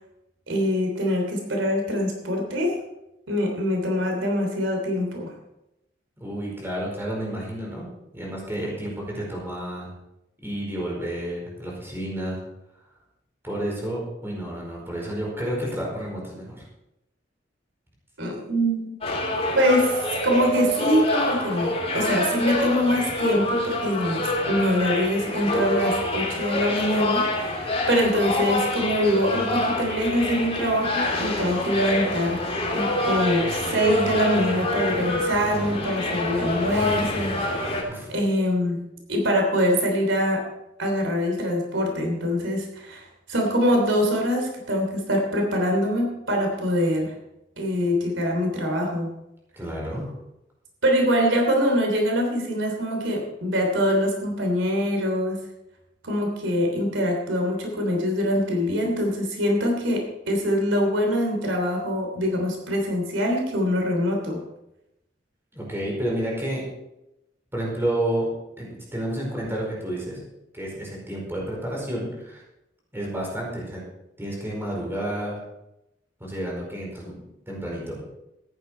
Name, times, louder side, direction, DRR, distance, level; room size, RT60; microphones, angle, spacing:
voice 1, 0.5-2.7 3.3-5.3 18.2-19.0 19.5-32.5 32.7-37.7 38.1-40.4 40.8-47.1 47.6-49.1 50.8-55.5 56.0-64.4, equal, 85° right, 2 dB, 3.2 m, -24 dB
voice 2, 6.2-7.9 8.1-9.9 10.4-12.4 13.4-16.6 37.9-38.1 49.6-50.0 65.5-66.6 67.5-68.3 68.6-70.2 70.5-72.4 72.9-73.8 74.2-75.4 76.2-77.1 77.5-78.0, right 1 dB, 15° right, -3 dB, 4.8 m, -30 dB
sound 1, 19.0-37.8, left 1 dB, 35° left, 3.0 m, -26 dB
14.5 x 11.0 x 4.5 m, 0.88 s
head